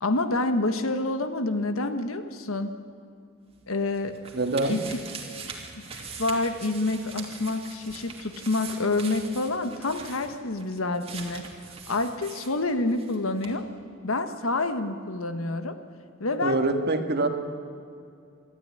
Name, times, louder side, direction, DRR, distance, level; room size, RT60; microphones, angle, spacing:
voice 1, 0.0-2.7 3.7-4.2 4.7-5.0 5.8-11.4 11.9-13.6 14.0-15.8 16.2-16.6, left 2 dB, 85° left, 9 dB, 1.5 m, -28 dB
sound 1, 3.5-13.2 13.4-13.5, right 5 dB, 30° right, 2.7 m, -42 dB
voice 2, 4.3-4.8 16.4-17.3, right 2 dB, 50° right, 6 dB, 1.8 m, -24 dB
23.5 x 14.0 x 9.8 m, 2.4 s
head